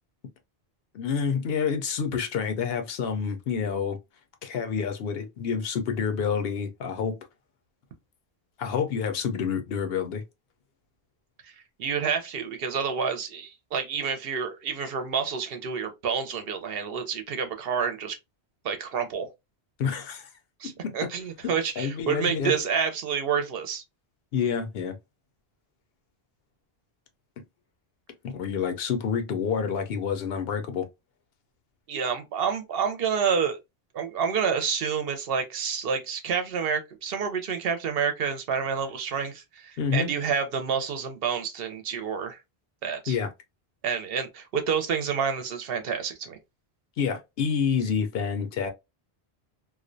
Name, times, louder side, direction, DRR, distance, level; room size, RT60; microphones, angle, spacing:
voice 1, 0.9-4.0 4.4-7.2 8.6-10.2 19.8-20.3 20.6-20.9 21.8-22.5 24.3-25.0 28.2-30.9 39.8-40.1 43.1-43.3 47.0-48.7, left 6 dB, 70° left, 0.8 m, -28 dB
voice 2, 11.8-18.2 18.6-19.3 20.6-23.8 31.9-33.6 33.9-42.4 42.8-43.2 43.8-46.4, right 6 dB, 70° right, 0.7 m, -28 dB
2.4 x 2.1 x 2.5 m
omnidirectional pair, 1.1 m